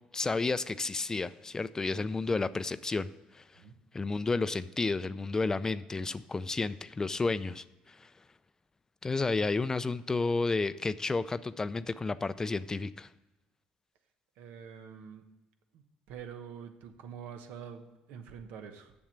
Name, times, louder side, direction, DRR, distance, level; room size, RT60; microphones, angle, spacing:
voice 1, 0.1-3.4 3.9-8.1 9.0-13.1, left 3 dB, 20° left, 15 dB, 0.4 m, -31 dB
voice 2, 14.4-15.2 15.7-18.9, right 7 dB, 80° right, 7 dB, 1.0 m, -46 dB
7.3 x 7.0 x 7.4 m, 1.1 s
supercardioid pair, 90°, 3 cm